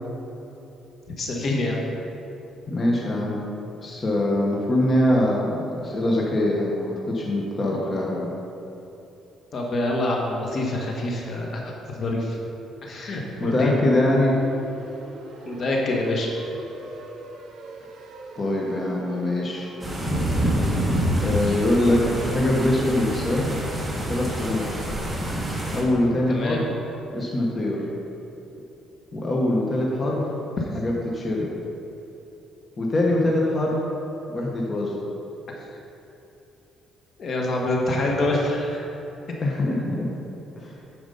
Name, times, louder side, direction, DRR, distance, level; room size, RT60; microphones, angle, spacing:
voice 1, 1.2-1.8 9.5-12.4 12.8-13.7 15.4-16.3 21.4-21.5 26.3-26.6 30.6-30.8 35.6-35.7 37.2-38.9, left 2 dB, 45° left, -1 dB, 1.2 m, -26 dB
voice 2, 2.7-3.4 3.8-8.3 13.4-14.4 18.4-19.7 21.2-23.5 23.9-24.8 25.7-26.6 27.1-27.8 29.1-30.3 30.7-31.5 32.8-33.8 34.3-34.9 39.4-40.1 40.6-40.7, left 1 dB, 25° left, -2 dB, 1.1 m, -23 dB
sound 1, 13.3-20.2, right 3 dB, 60° right, 1.2 m, -42 dB
sound 2, 19.8-25.8, equal, 10° right, 1.4 m, -26 dB
9.1 x 4.8 x 5.4 m, 3.0 s
cardioid pair, 125°, 0 cm